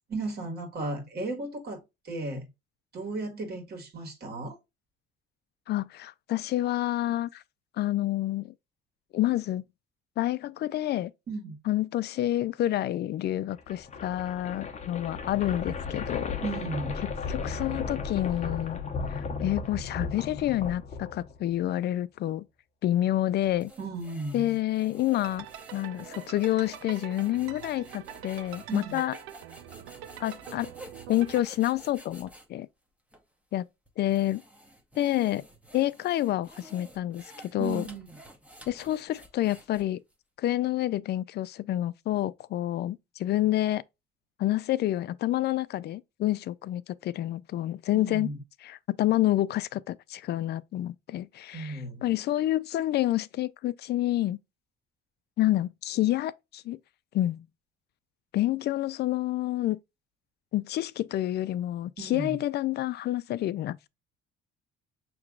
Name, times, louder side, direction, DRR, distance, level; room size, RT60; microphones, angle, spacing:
voice 1, 0.1-2.5 2.9-4.6 11.3-11.6 16.4-17.0 23.8-24.5 28.7-29.0 37.6-38.1 47.9-48.4 51.5-52.1 62.0-62.4, right 2 dB, 50° right, 1.7 m, -35 dB
voice 2, 5.7-7.4 7.8-8.5 9.1-9.6 10.2-11.1 11.7-16.4 17.3-18.8 19.1-22.5 22.8-23.7 24.3-25.5 25.7-29.1 30.2-30.7 31.1-32.7 33.5-33.7 34.0-34.4 35.0-35.4 35.7-37.2 37.5-37.9 38.7-40.0 40.4-43.8 44.4-48.3 48.6-54.4 55.4-56.8 57.1-57.5 58.3-59.8 60.5-63.9, left 14 dB, 50° left, 0.4 m, -28 dB
sound 1, 13.5-21.6, left 4 dB, 35° left, 0.8 m, -35 dB
sound 2, 23.3-32.5 33.1-33.2 33.9-40.1, equal, 5° right, 0.9 m, -51 dB
sound 3, 25.1-31.4, right 11 dB, 85° right, 0.6 m, -45 dB
6.0 x 3.0 x 2.3 m
cardioid pair, 110°, 21 cm